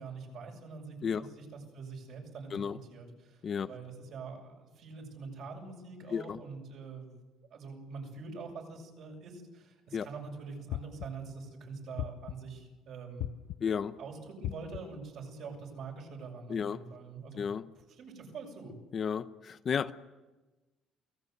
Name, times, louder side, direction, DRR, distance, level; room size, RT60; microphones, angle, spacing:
voice 1, 0.0-1.5 1.7-2.6 2.9-7.1 7.5-13.3 14.0-17.5 18.0-18.7, right 4 dB, 55° right, 1 dB, 7.2 m, -45 dB
sound 1, 10.7-11.3 12.0-12.6 13.2-13.8 14.4-15.1, left 13 dB, 70° left, 0.8 m, -39 dB
voice 2, 13.6-13.9 16.5-16.8 17.4-17.7 18.9-19.9, left 7 dB, 35° left, 11 dB, 0.8 m, -32 dB
29.0 x 18.5 x 8.1 m, 1.2 s
cardioid pair, 140°, 0 cm